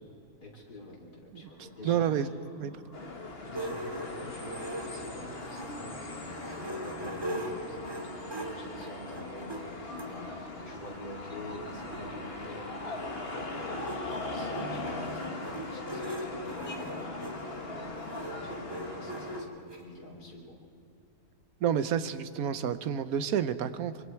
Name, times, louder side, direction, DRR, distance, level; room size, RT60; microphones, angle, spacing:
voice 1, 0.4-2.1 3.4-13.9 14.3-20.6, left 1 dB, 80° left, -1 dB, 4.0 m, -47 dB
sound 1, 1.4-15.8, equal, 25° left, 4.6 m, -56 dB
voice 2, 1.8-2.3 2.6-2.7 21.6-23.9, right 9 dB, 70° right, 12 dB, 1.2 m, -29 dB
sound 2, 2.9-19.4, left 2 dB, 40° left, 1.6 m, -40 dB
sound 3, 3.5-5.8 6.2-10.1 10.9-11.0 11.3-11.4 11.5-19.8, right 1 dB, 15° right, 2.4 m, -40 dB
24.0 x 24.0 x 4.6 m, 2.5 s
omnidirectional pair, 1.6 m